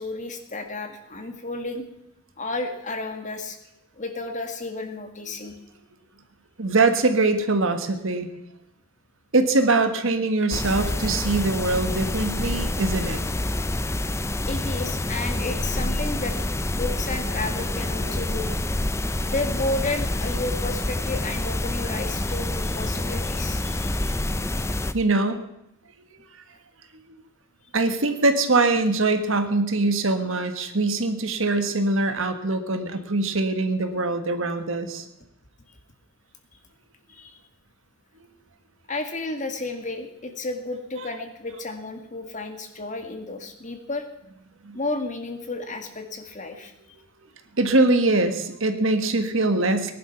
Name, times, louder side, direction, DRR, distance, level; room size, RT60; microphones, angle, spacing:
voice 1, 0.0-1.9 2.4-3.6 3.9-5.6 14.5-18.5 19.3-24.2 37.1-37.3 38.9-44.0 44.7-46.7, left 2 dB, 35° left, 5 dB, 1.9 m, -32 dB
voice 2, 6.6-8.3 9.3-13.2 24.9-25.4 27.7-35.1 44.6-44.8 47.6-49.9, right 2 dB, 60° right, 8 dB, 1.6 m, -22 dB
sound 1, 10.5-24.9, left 1 dB, 10° left, 0.5 m, -27 dB
19.0 x 11.0 x 5.9 m, 0.87 s
head